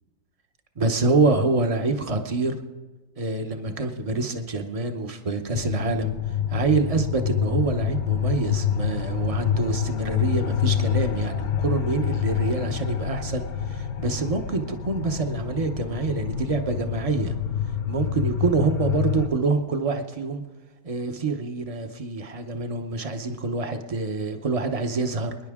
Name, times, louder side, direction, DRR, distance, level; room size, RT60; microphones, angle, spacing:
voice 1, 0.8-2.6 3.2-6.1 6.5-17.3 17.9-20.4 20.8-25.4, right 3 dB, 30° right, 6 dB, 0.6 m, -26 dB
sound 1, 5.5-19.3, left 9 dB, 70° left, 1.3 m, -27 dB
26.0 x 10.5 x 3.6 m, 1.2 s
omnidirectional pair, 1.7 m